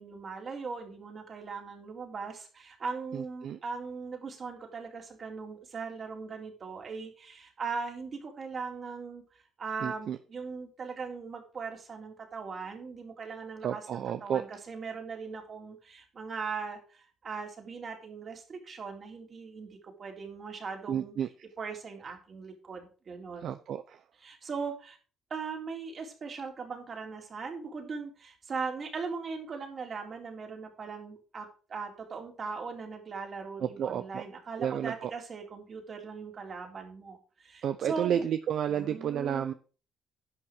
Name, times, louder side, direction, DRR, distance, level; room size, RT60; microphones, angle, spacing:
voice 1, 0.0-9.2 9.6-21.1 21.6-23.5 24.2-25.0 25.3-38.2 38.7-39.5, right 5 dB, 45° right, 3 dB, 3.7 m, -39 dB
voice 2, 3.1-3.6 9.8-10.2 13.6-14.4 20.9-21.3 23.4-24.0 33.6-34.2 34.6-35.1 37.6-39.5, right 9 dB, 70° right, 11 dB, 0.7 m, -31 dB
10.5 x 6.0 x 6.2 m, 0.37 s
cardioid pair, 90°, 0 cm